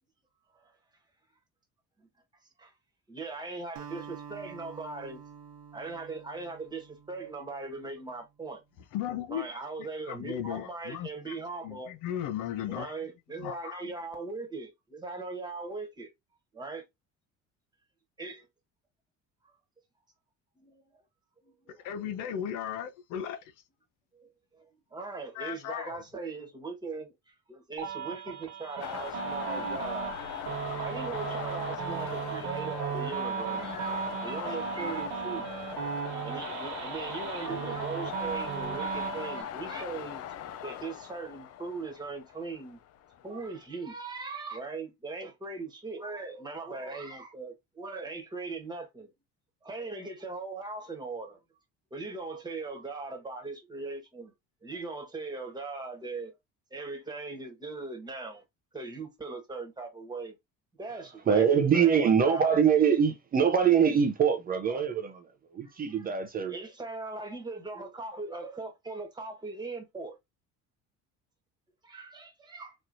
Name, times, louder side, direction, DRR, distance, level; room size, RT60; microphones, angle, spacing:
voice 1, 3.1-5.2 5.7-8.6 9.3-12.0 12.7-16.1 16.5-16.8 18.2-18.5 20.6-21.0 21.4-22.0 24.1-30.2 30.8-35.5 35.7-40.2 40.6-42.8 43.2-49.1 49.6-51.4 51.9-54.3 54.6-56.3 56.7-58.4 58.7-60.3 60.8-62.6 64.7-64.9 65.6-66.1 66.5-70.2 71.9-72.7, right 3 dB, 15° right, 1.3 m, -40 dB
Acoustic guitar, 3.8-8.2, right 7 dB, 85° right, 0.9 m, -48 dB
voice 2, 8.9-9.6 10.1-11.4 11.6-12.9 13.4-13.9 21.7-23.5 25.3-26.0, left 10 dB, 80° left, 0.8 m, -36 dB
sound 1, 27.8-39.4, right 8 dB, 70° right, 1.3 m, -36 dB
sound 2, 28.8-43.7, left 10 dB, 50° left, 0.5 m, -40 dB
voice 3, 61.3-65.1 65.5-66.6, right 7 dB, 30° right, 0.5 m, -23 dB
4.3 x 3.1 x 2.5 m
cardioid pair, 155°, 31 cm